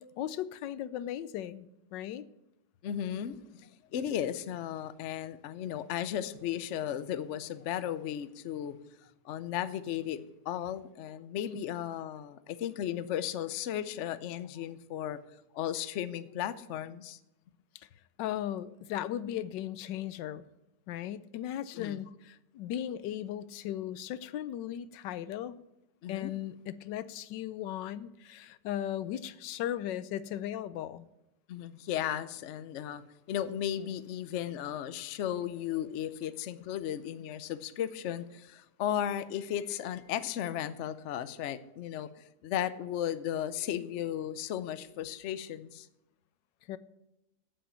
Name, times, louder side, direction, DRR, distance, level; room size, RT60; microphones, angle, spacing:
voice 1, 0.0-1.7 1.9-2.3 11.5-11.6 18.2-20.4 20.9-25.6 26.1-31.1 46.7-46.8, left 11 dB, 85° left, 16 dB, 1.3 m, -37 dB
voice 2, 2.8-8.8 9.2-10.2 10.5-15.2 15.5-17.2 21.7-22.0 26.0-26.3 31.5-33.0 33.3-45.9, left 10 dB, 65° left, 13 dB, 0.7 m, -35 dB
8.7 x 7.4 x 8.5 m, 0.90 s
omnidirectional pair, 1.9 m